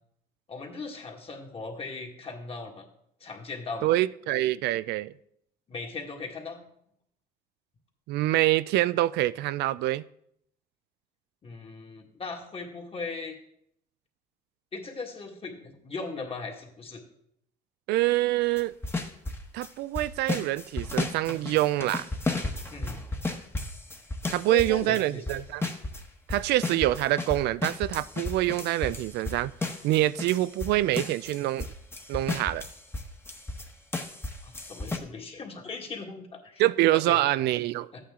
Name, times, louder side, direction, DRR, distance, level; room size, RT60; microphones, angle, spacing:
voice 1, 0.5-2.8 3.2-3.9 5.7-6.6 11.4-13.4 14.7-17.0 22.7-23.0 24.5-25.4 34.4-36.6 36.9-37.3 37.9-38.0, left 4 dB, 35° left, 2.0 m, -38 dB
voice 2, 3.8-5.1 8.1-10.0 17.9-18.7 19.5-22.1 24.3-25.6 26.3-29.5 29.8-31.7 32.1-32.6 36.6-38.0, right 15 dB, 80° right, 0.4 m, -25 dB
sound 1, 18.6-19.7 19.9-26.0 26.3-33.6 33.9-35.0, left 2 dB, 15° left, 1.2 m, -33 dB
12.5 x 8.7 x 3.7 m
cardioid pair, 110°, 17 cm